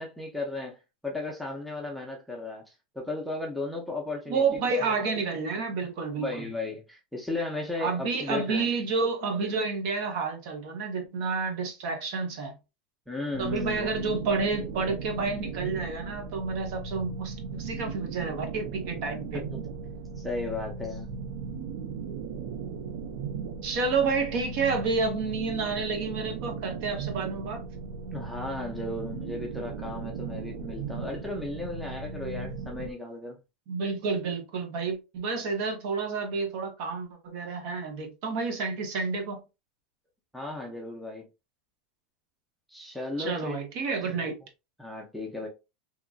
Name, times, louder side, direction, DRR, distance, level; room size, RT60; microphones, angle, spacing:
voice 1, 0.0-4.4 4.9-5.0 6.2-8.7 13.1-14.3 19.3-19.6 20.2-21.1 28.1-33.4 40.3-41.3 42.7-43.7 44.1-44.3 44.8-45.5, left 2 dB, ahead, 0.5 m, -35 dB
voice 2, 4.3-6.5 7.8-12.5 13.4-19.4 23.6-27.6 33.7-39.4 43.2-44.4, right 4 dB, 50° right, 0.9 m, -30 dB
sound 1, 13.3-32.9, right 5 dB, 85° right, 0.4 m, -37 dB
2.9 x 2.4 x 2.3 m
supercardioid pair, 160°, 4 cm